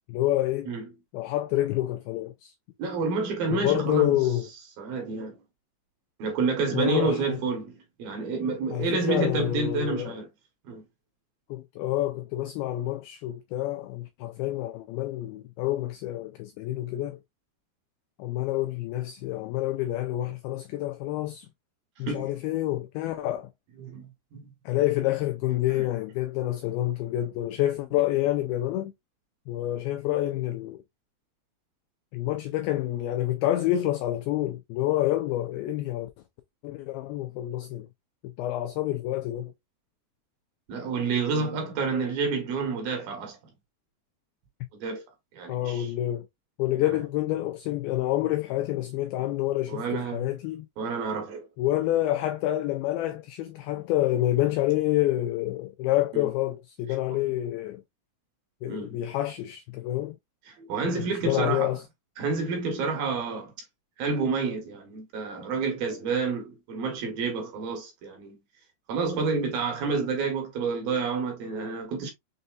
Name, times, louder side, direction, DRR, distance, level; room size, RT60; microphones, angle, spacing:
voice 1, 0.1-0.7 1.1-2.5 3.5-4.5 6.7-7.4 8.7-10.2 11.5-17.2 18.2-21.5 22.0-23.5 24.7-28.9 29.5-30.8 32.1-36.1 36.6-37.9 38.4-39.5 45.5-46.3 46.6-50.7 51.6-57.8 58.6-60.2 60.8-61.8, left 14 dB, 90° left, 2.1 m, -28 dB
voice 2, 2.8-4.2 4.8-5.4 6.2-10.3 10.7-10.8 22.1-22.3 23.8-24.5 25.8-25.9 40.7-43.4 44.8-45.0 45.3-45.9 49.7-50.3 50.8-51.5 56.1-56.3 58.7-59.0 60.5-61.7 62.2-63.5 64.0-68.4 68.9-72.1, right 4 dB, 70° right, 2.6 m, -29 dB
6.5 x 2.7 x 2.3 m
omnidirectional pair, 4.9 m